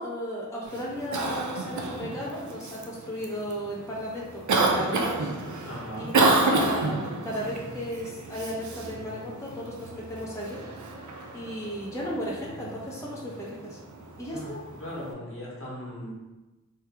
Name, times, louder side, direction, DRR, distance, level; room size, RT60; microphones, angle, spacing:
voice 1, 0.0-5.3 6.0-10.6 11.3-13.8 14.2-14.6, equal, 10° left, -5 dB, 0.7 m, -35 dB
Cough, 0.6-15.1, right 2 dB, 75° right, 0.5 m, -30 dB
voice 2, 5.6-6.1 14.3-14.5 14.8-16.1, equal, 45° left, -5 dB, 1.0 m, -38 dB
2.9 x 2.2 x 3.3 m, 1.1 s
wide cardioid pair, 40°, 30 cm